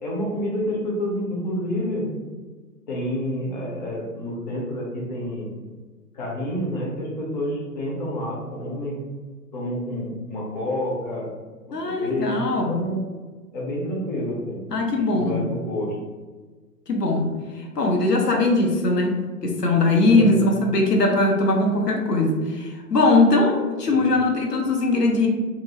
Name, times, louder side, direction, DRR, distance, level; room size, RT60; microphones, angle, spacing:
voice 1, 0.0-2.0 2.9-5.5 6.1-9.0 9.5-11.3 11.7-13.0 13.5-14.6 15.1-16.0 20.1-20.5 23.9-24.2, equal, 30° left, -4 dB, 0.6 m, -29 dB
voice 2, 11.7-12.8 14.7-15.4 16.9-17.3 17.8-25.3, left 2 dB, 80° left, 1 dB, 0.7 m, -20 dB
2.6 x 2.3 x 2.8 m, 1.4 s
figure-of-eight pair, 125°, 48 cm